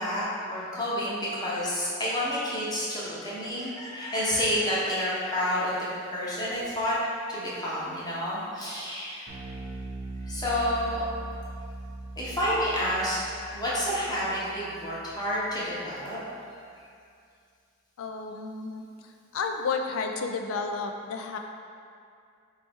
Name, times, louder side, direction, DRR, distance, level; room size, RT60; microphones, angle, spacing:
voice 1, 0.0-6.9 7.3-9.2 10.2-11.0 12.2-13.2 13.5-16.2, equal, 20° left, -8 dB, 0.9 m, -29 dB
Bass guitar, 9.3-15.7, right 2 dB, 75° right, 0.9 m, -41 dB
voice 2, 18.0-18.8 19.3-21.4, left 4 dB, 75° left, 4 dB, 0.3 m, -31 dB
4.4 x 2.8 x 3.4 m, 2.4 s
head